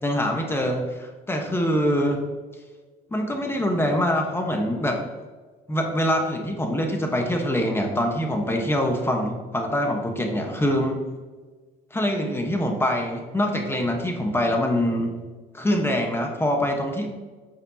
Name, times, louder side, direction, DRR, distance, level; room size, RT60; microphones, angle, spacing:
voice 1, 0.0-2.2 3.1-5.0 5.7-11.0 11.9-15.1 15.5-17.1, equal, 15° left, 2 dB, 1.1 m, -24 dB
8.8 x 7.1 x 2.8 m, 1.4 s
cardioid pair, 110°, 17 cm